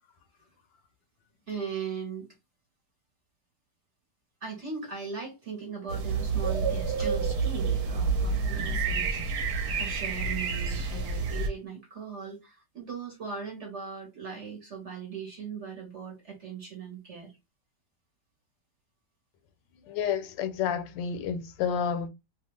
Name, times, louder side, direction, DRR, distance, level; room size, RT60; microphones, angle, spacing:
voice 1, 1.5-2.3 4.4-17.4, right 6 dB, 50° right, 1.1 m, -39 dB
sound 1, 5.9-11.5, right 4 dB, 75° right, 1.2 m, -29 dB
voice 2, 19.9-22.1, left 7 dB, 85° left, 1.2 m, -30 dB
2.8 x 2.4 x 3.0 m
omnidirectional pair, 1.9 m